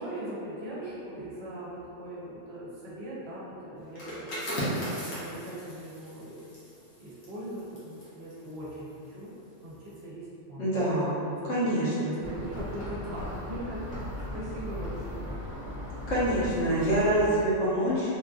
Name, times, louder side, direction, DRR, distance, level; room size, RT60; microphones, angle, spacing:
voice 1, 0.0-9.3 9.6-10.7 11.2-11.3 11.8-15.3, right 1 dB, 60° right, -7 dB, 0.8 m, -40 dB
sound 1, 3.9-9.4 9.7-10.0, equal, 85° left, 1.3 m, -37 dB
voice 2, 10.6-11.2 11.5-12.1 16.1-18.2, right 1 dB, 65° left, -10 dB, 1.1 m, -26 dB
sound 2, 12.2-17.3, equal, 35° left, 1.0 m, -37 dB
3.4 x 2.5 x 2.3 m, 2.8 s
omnidirectional pair, 1.3 m